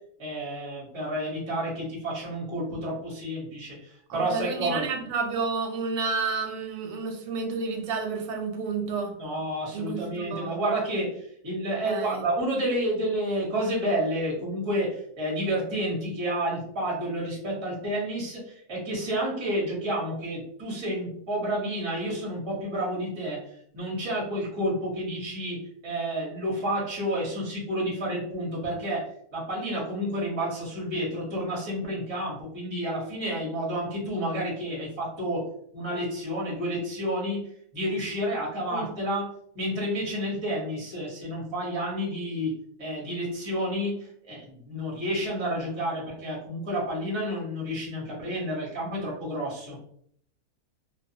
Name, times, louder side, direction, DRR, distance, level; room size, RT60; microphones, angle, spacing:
voice 1, 0.2-3.8 4.1-4.9 9.2-23.4 23.7-29.0 29.3-35.5 35.7-37.4 37.7-39.3 39.5-49.8, equal, 25° right, -4 dB, 0.8 m, -30 dB
voice 2, 4.1-9.1 9.7-10.6 11.9-12.2 38.7-38.9, right 4 dB, 90° right, 2 dB, 1.2 m, -31 dB
2.6 x 2.3 x 2.7 m, 0.65 s
omnidirectional pair, 1.6 m